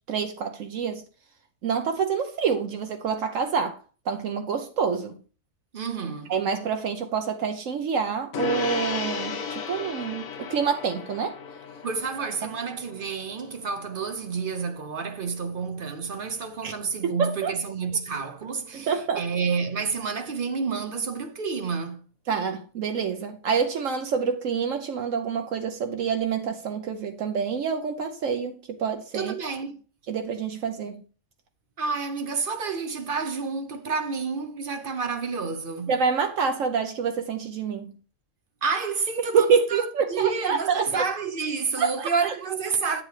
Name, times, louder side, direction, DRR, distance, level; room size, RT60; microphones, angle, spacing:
voice 1, 0.1-1.0 1.6-3.8 4.1-5.1 6.3-11.3 16.6-16.7 17.2-17.5 18.7-19.2 22.3-29.3 30.1-31.0 35.9-37.9 39.3-41.0 41.8-42.1, right 6 dB, 70° right, 1.0 m, -27 dB
voice 2, 5.7-6.3 11.8-22.0 29.1-29.8 31.8-36.0 38.6-43.0, right 5 dB, 50° right, 0.7 m, -29 dB
Gong, 8.3-18.0, left 6 dB, 85° left, 1.4 m, -36 dB
9.3 x 7.3 x 3.2 m
omnidirectional pair, 1.4 m